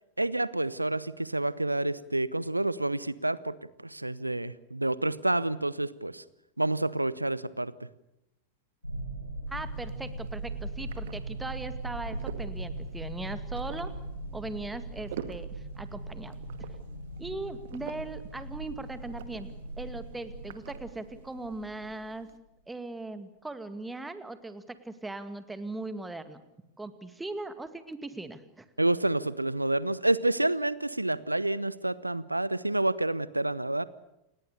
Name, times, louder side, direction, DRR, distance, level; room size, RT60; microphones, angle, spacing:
voice 1, 0.2-3.6 3.8-6.2 6.6-7.7 28.8-33.8, right 2 dB, 85° right, 19 dB, 0.9 m, -28 dB
sound 1, 8.8-22.1, right 2 dB, 90° left, 4.5 m, -39 dB
voice 2, 9.5-13.9 14.3-16.4 17.2-19.5 19.8-22.3 22.7-26.4 26.8-28.7, right 2 dB, 10° right, 11 dB, 2.1 m, -39 dB
sound 2, 9.5-22.4, right 10 dB, 55° right, 1.9 m, -49 dB
29.0 x 20.5 x 6.8 m, 0.88 s
figure-of-eight pair, 90°, 0 cm